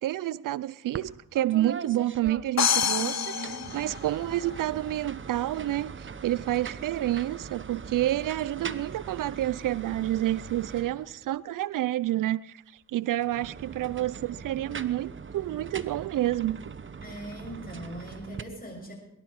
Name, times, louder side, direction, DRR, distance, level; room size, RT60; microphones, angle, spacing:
voice 1, 0.0-3.2 3.7-12.6 12.9-16.6, right 14 dB, 75° right, 0.5 m, -29 dB
sound 1, 0.9-1.1 1.4-2.9 3.3-11.4 13.1-18.4, right 5 dB, 35° right, 0.9 m, -41 dB
sound 2, 2.6-4.5, left 8 dB, 50° left, 0.9 m, -27 dB
voice 2, 3.0-3.7 17.0-18.9, right 1 dB, 25° left, 7.3 m, -40 dB
21.5 x 12.0 x 4.7 m
cardioid pair, 65°, 33 cm